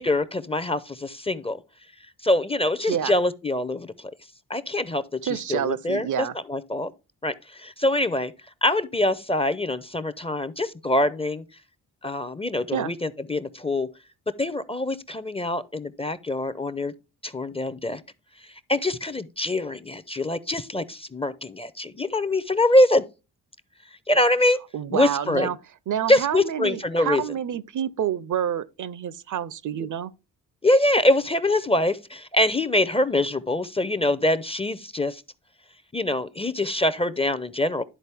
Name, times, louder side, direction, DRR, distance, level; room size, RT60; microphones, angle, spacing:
voice 1, 0.0-1.6 2.2-4.1 4.5-6.9 7.2-8.3 8.6-11.4 12.0-13.9 14.4-16.9 17.2-18.0 18.7-23.0 24.1-24.6 24.9-25.5 26.1-27.2 30.6-35.2 35.9-37.8, left 1 dB, 15° left, 0.5 m, -24 dB
voice 2, 5.2-6.3 12.7-12.9 24.7-25.6 25.9-30.1, right 9 dB, 50° right, 0.6 m, -28 dB
11.5 x 4.0 x 3.4 m
supercardioid pair, 50°, 40 cm